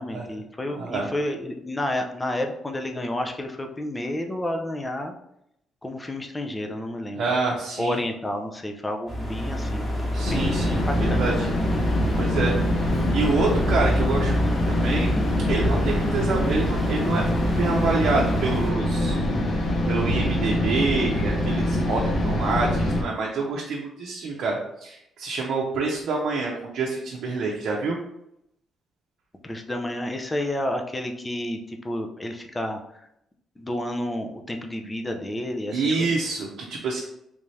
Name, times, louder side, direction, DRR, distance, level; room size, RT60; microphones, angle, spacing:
voice 1, 0.0-5.1 5.8-7.2 7.8-9.9 10.2-11.2 29.4-32.8 33.6-36.2, left 1 dB, 15° left, 4 dB, 0.5 m, -30 dB
voice 2, 0.8-1.1 7.2-8.0 10.1-11.5 12.2-15.1 15.5-19.2 19.9-28.0 35.7-37.0, right 3 dB, 70° right, -2 dB, 0.6 m, -27 dB
sound 1, 9.1-18.7, left 1 dB, 30° left, 1.3 m, -27 dB
sound 2, 10.2-23.0, left 1 dB, 60° left, 0.8 m, -24 dB
3.5 x 2.7 x 3.2 m, 0.79 s
cardioid pair, 90°, 0 cm